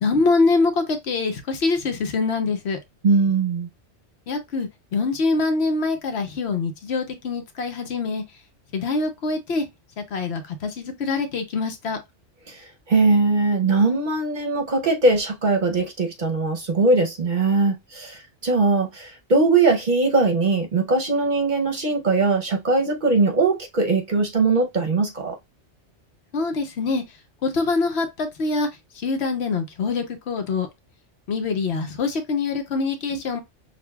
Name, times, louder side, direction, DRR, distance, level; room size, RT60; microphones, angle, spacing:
voice 1, 0.0-2.8 4.3-8.2 8.7-9.7 10.1-12.0 26.3-27.0 27.4-28.7 29.0-30.7 31.3-33.4, left 3 dB, 70° left, 1.0 m, -24 dB
voice 2, 3.0-3.7 12.5-12.6 12.9-25.3 33.1-33.2, right 3 dB, 50° right, 0.8 m, -20 dB
6.4 x 2.2 x 2.3 m
omnidirectional pair, 1.2 m